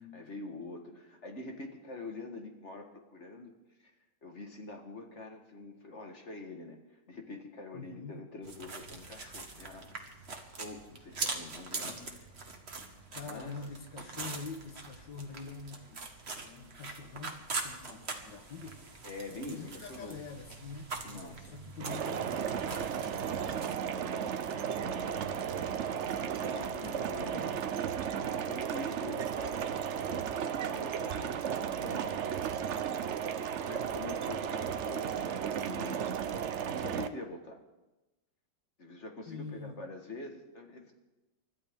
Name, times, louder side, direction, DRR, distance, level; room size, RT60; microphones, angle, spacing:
voice 1, 0.1-3.5 3.8-3.9 4.2-10.2 10.5-12.2 13.2-13.6 19.0-20.2 21.0-21.5 26.3-27.5 28.2-32.2 33.6-36.0 36.7-37.6 38.8-40.9, left 2 dB, 40° left, 3 dB, 1.6 m, -45 dB
voice 2, 7.7-8.1 11.9-12.2 13.1-16.1 16.4-18.8 19.4-20.9 21.5-27.7 39.3-39.8, left 4 dB, 70° left, 6 dB, 1.8 m, -47 dB
sound 1, 8.4-23.7, right 3 dB, 35° right, 1.6 m, -43 dB
sound 2, 21.8-37.1, right 8 dB, 60° right, 0.7 m, -34 dB
29.5 x 13.0 x 3.6 m, 1.1 s
omnidirectional pair, 2.0 m